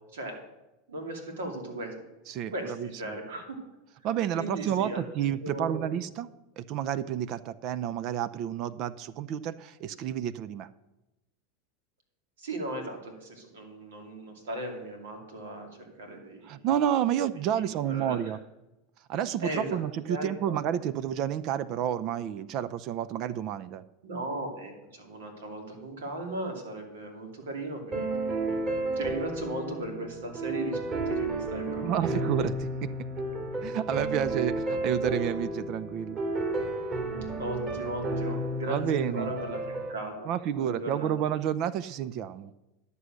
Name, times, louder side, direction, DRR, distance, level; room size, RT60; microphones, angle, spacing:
voice 1, 0.9-2.0 2.5-3.6 4.3-5.0 5.4-6.0 12.4-15.7 16.0-16.6 17.6-18.2 19.4-19.8 20.1-20.6 24.0-28.7 29.0-32.2 37.4-40.3 40.5-41.3, right 2 dB, 80° right, 4 dB, 2.5 m, -37 dB
voice 2, 2.3-3.2 4.0-6.3 6.6-10.7 16.4-18.4 19.1-23.8 31.8-32.7 33.6-36.2 38.7-39.3 40.3-42.5, right 10 dB, 50° right, 15 dB, 0.4 m, -30 dB
sound 1, 27.9-39.9, right 2 dB, 35° right, 2.8 m, -32 dB
11.0 x 6.9 x 6.4 m, 0.98 s
hypercardioid pair, 100°, 0 cm